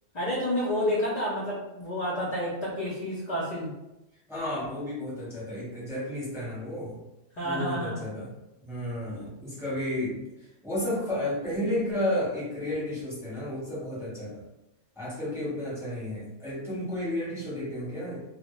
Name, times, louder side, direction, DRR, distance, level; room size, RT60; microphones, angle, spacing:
voice 1, 0.1-3.7 7.3-8.0, equal, 55° left, -5 dB, 0.4 m, -29 dB
voice 2, 4.3-7.0 7.4-8.3 8.6-14.4 14.9-18.2, left 1 dB, 5° right, -8 dB, 0.7 m, -32 dB
2.1 x 2.0 x 2.9 m, 0.95 s
omnidirectional pair, 1.3 m